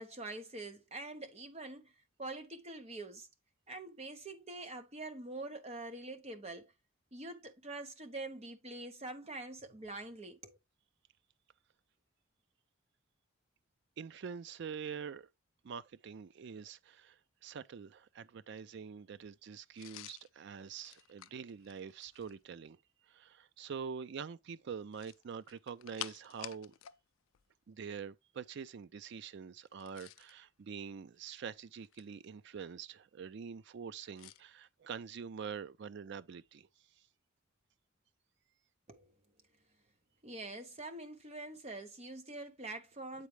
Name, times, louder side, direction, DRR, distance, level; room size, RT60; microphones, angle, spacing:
voice 1, 0.0-1.9 2.2-3.3 3.7-6.7 7.1-10.6 38.9-39.1 40.2-43.3, right 2 dB, 30° right, 0.8 m, -45 dB
voice 2, 14.0-15.3 15.6-22.8 23.1-26.7 27.7-36.7, right 6 dB, 55° right, 0.4 m, -45 dB
sound 1, 19.8-22.4 24.8-27.0 27.3-27.4 29.7-30.4 31.1-32.3 34.2-34.4, left 13 dB, 70° left, 0.4 m, -50 dB
8.3 x 4.1 x 3.2 m
head